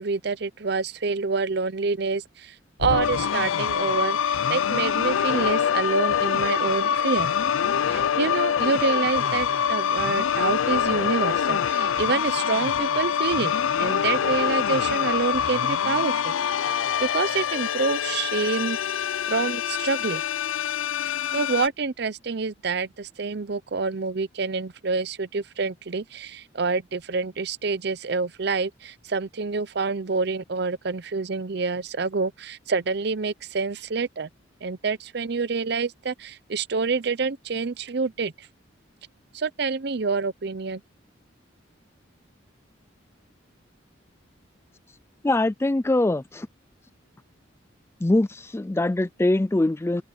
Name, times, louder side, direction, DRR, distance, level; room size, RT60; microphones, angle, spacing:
voice 1, 0.0-7.3 7.9-13.5 13.8-16.7 17.0-19.0 19.3-20.2 21.0-34.3 34.6-38.5 39.3-40.8, right 4 dB, 55° right, 0.6 m, -27 dB
sound 1, 2.8-21.7, left 8 dB, 90° left, 0.5 m, -25 dB
voice 2, 45.2-46.5 48.0-50.0, left 2 dB, 15° left, 0.3 m, -23 dB
head